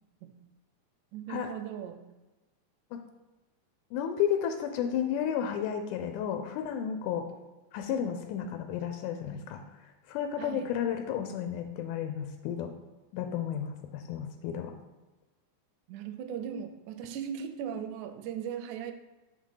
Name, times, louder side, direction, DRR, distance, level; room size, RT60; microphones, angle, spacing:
voice 1, 1.1-2.1 10.4-10.7 15.9-18.9, right 8 dB, 80° right, 7 dB, 1.9 m, -38 dB
voice 2, 3.9-7.3 7.7-9.6 10.1-12.7 13.1-14.7, left 8 dB, 85° left, 6 dB, 2.1 m, -32 dB
5.3 x 3.6 x 5.6 m, 1.1 s
omnidirectional pair, 3.6 m